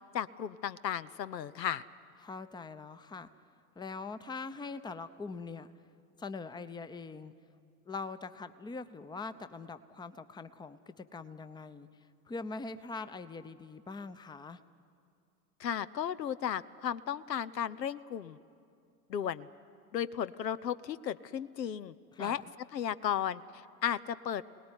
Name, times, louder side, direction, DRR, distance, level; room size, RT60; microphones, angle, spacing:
voice 1, 0.1-1.8 15.6-18.4 19.1-19.5 19.9-22.4 22.7-24.5, left 9 dB, 80° left, 15 dB, 0.7 m, -35 dB
voice 2, 2.2-3.3 3.8-5.7 6.2-7.3 7.9-11.9 12.3-14.6 22.1-22.4, left 4 dB, 10° left, 12 dB, 0.7 m, -42 dB
24.5 x 18.5 x 9.7 m, 2.4 s
figure-of-eight pair, 80°, 49 cm